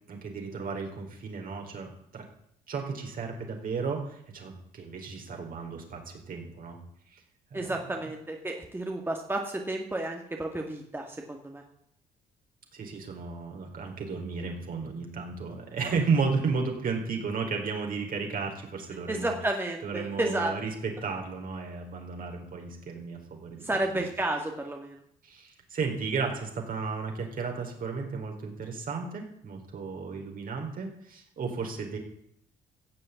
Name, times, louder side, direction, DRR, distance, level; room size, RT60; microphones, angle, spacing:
voice 1, 0.1-2.2 2.7-6.8 7.1-7.2 7.5-7.7 12.7-19.3 19.8-23.7 23.9-24.1 25.2-32.0, right 5 dB, 55° right, 1 dB, 4.5 m, -33 dB
voice 2, 7.5-11.6 19.1-20.6 23.6-25.0, right 2 dB, 15° right, 2 dB, 2.1 m, -31 dB
15.5 x 7.5 x 8.5 m, 0.72 s
supercardioid pair, 70°, 17 cm